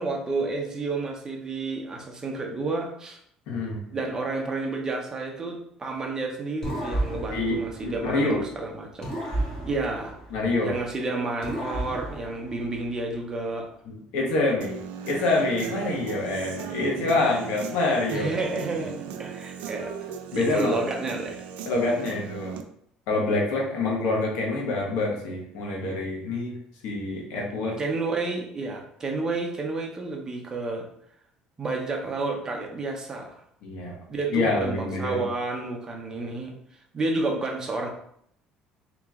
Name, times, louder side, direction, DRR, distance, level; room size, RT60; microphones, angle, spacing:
voice 1, 0.0-3.2 3.9-9.1 9.4-10.1 10.6-13.7 16.9-17.1 18.1-18.9 19.2-19.9 20.3-21.4 27.8-30.9 31.6-33.3 34.1-36.5 36.9-37.9, right 3 dB, 25° right, 1 dB, 0.7 m, -30 dB
voice 2, 3.5-3.8 7.3-8.4 10.3-10.8 13.9-18.3 20.3-20.7 21.7-22.6 23.1-26.6 26.8-27.8 33.6-33.9 34.3-35.2, left 2 dB, 80° left, -2 dB, 1.3 m, -26 dB
sound 1, 6.6-8.5 9.0-10.9 11.4-13.1, right 1 dB, 25° left, 1.1 m, -33 dB
Human voice / Guitar, 14.6-22.6, right 7 dB, 80° right, 0.4 m, -37 dB
3.0 x 2.8 x 3.6 m, 0.70 s
cardioid pair, 120°, 2 cm